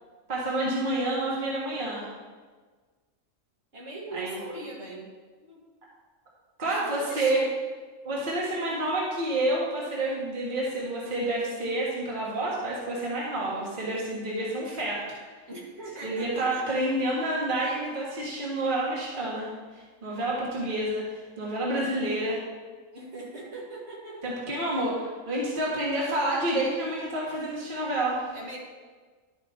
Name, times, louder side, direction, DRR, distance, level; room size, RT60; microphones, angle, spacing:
voice 1, 0.3-2.1 4.1-4.5 6.6-7.4 8.0-15.2 16.0-22.4 24.2-28.4, right 1 dB, 40° right, -5 dB, 1.6 m, -29 dB
voice 2, 3.7-5.1 5.4-5.6 6.6-7.5 15.5-16.8 22.9-24.2 28.3-28.6, right 2 dB, 55° right, -4 dB, 2.0 m, -40 dB
11.5 x 5.1 x 4.3 m, 1.4 s
omnidirectional pair, 1.4 m